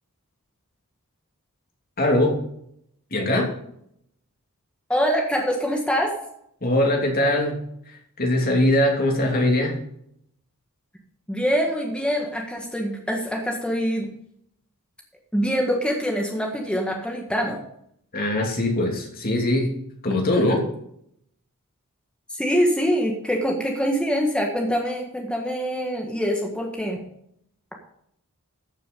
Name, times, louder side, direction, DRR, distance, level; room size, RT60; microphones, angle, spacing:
voice 1, 2.0-2.4 3.1-3.5 6.6-7.6 8.2-9.8 18.1-19.7 20.0-20.7, left 1 dB, 45° left, 1 dB, 2.8 m, -21 dB
voice 2, 4.9-6.1 11.3-14.1 15.3-17.6 22.3-27.0, equal, 5° left, 0 dB, 1.7 m, -24 dB
14.0 x 6.7 x 5.5 m, 0.72 s
head